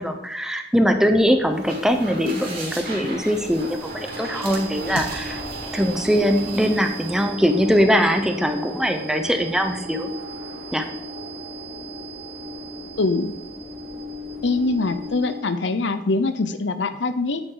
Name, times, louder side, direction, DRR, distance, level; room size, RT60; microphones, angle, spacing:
voice 1, 0.0-5.4 5.7-10.1 10.7-10.9, equal, 5° right, 6 dB, 0.8 m, -21 dB
sound 1, 1.3-15.1, equal, 55° left, 2.5 m, -40 dB
sound 2, 1.5-7.3, right 2 dB, 55° right, 3.5 m, -38 dB
sound 3, 2.1-15.7, right 1 dB, 35° right, 1.6 m, -37 dB
voice 2, 13.0-13.3 14.4-17.4, left 3 dB, 80° left, 11 dB, 0.7 m, -23 dB
9.4 x 8.8 x 3.9 m, 0.85 s
head